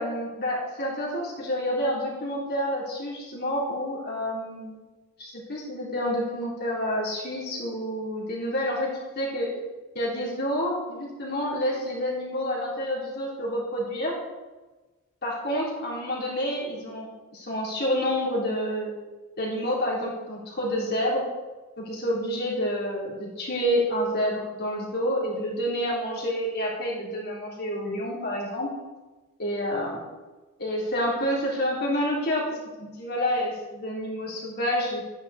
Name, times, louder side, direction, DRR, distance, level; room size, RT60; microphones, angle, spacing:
voice 1, 0.0-4.9 5.2-8.9 9.2-9.5 10.0-14.2 15.2-18.9 19.4-21.2 21.8-28.7 29.4-30.0 30.6-32.4 32.8-35.0, equal, 45° left, -4 dB, 3.5 m, -28 dB
12.5 x 9.9 x 4.2 m, 1.2 s
head